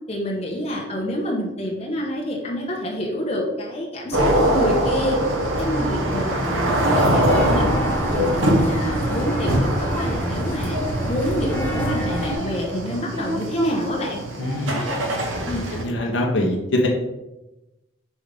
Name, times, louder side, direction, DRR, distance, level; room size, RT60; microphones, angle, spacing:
voice 1, 0.1-7.7 8.1-10.8 11.1-14.2 15.5-15.6, equal, 30° left, -2 dB, 1.0 m, -27 dB
sound 1, 4.1-15.8, right 1 dB, 75° right, 1.1 m, -23 dB
sound 2, 7.3-12.4, equal, 10° left, 0.9 m, -27 dB
voice 2, 14.4-14.8 15.7-16.9, left 1 dB, 65° left, 0 dB, 0.9 m, -23 dB
5.4 x 3.4 x 5.2 m, 0.97 s
head